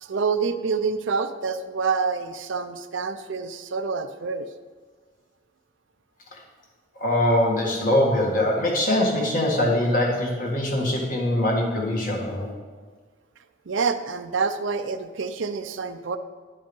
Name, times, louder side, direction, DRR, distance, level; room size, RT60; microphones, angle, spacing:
voice 1, 0.0-4.5 13.7-16.2, right 5 dB, 65° right, 9 dB, 0.5 m, -27 dB
voice 2, 7.0-12.5, left 1 dB, 40° left, -2 dB, 1.8 m, -22 dB
11.0 x 5.3 x 5.3 m, 1.5 s
head